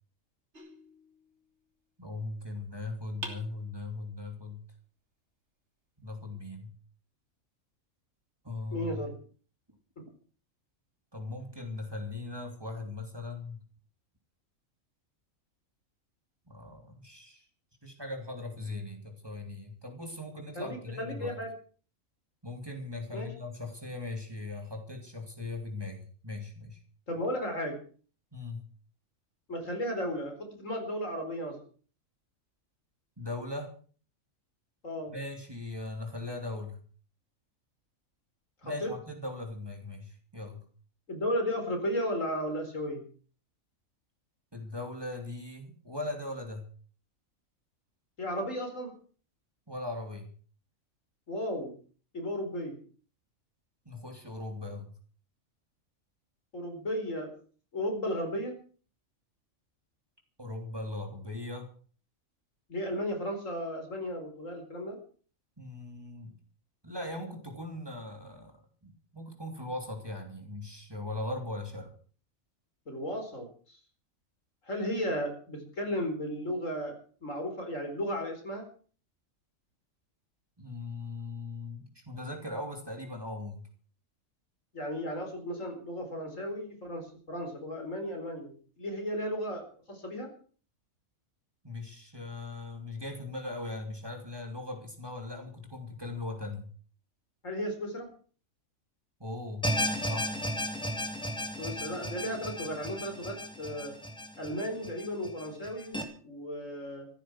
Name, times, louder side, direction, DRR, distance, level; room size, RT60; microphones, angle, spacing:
sound 1, 0.5-1.7 3.2-4.2, right 2 dB, 55° right, 3.1 m, -46 dB
voice 1, 2.0-4.6 6.0-6.7 8.4-9.0 11.1-13.6 16.5-17.4 17.8-21.4 22.4-26.8 28.3-28.7 33.2-33.7 35.1-36.8 38.6-40.6 44.5-46.6 49.7-50.3 53.8-54.9 60.4-61.7 65.6-66.4 66.8-71.9 80.6-83.6 91.6-96.7 99.2-99.7 100.1-100.5, left 2 dB, 15° right, 2 dB, 3.2 m, -39 dB
voice 2, 8.7-9.2 10.0-10.1 20.6-21.5 23.1-23.3 27.1-27.8 29.5-31.6 34.8-35.1 38.6-38.9 41.1-43.0 48.2-48.9 51.3-51.7 52.1-52.8 56.5-57.3 57.7-58.5 62.7-65.0 72.9-73.8 74.7-78.6 84.7-90.3 97.4-98.1 101.6-103.9 104.4-107.1, equal, 70° left, 3 dB, 4.8 m, -34 dB
sound 2, 99.6-106.0, equal, 5° left, 2.7 m, -34 dB
15.0 x 13.5 x 6.2 m, 0.43 s
omnidirectional pair, 1.4 m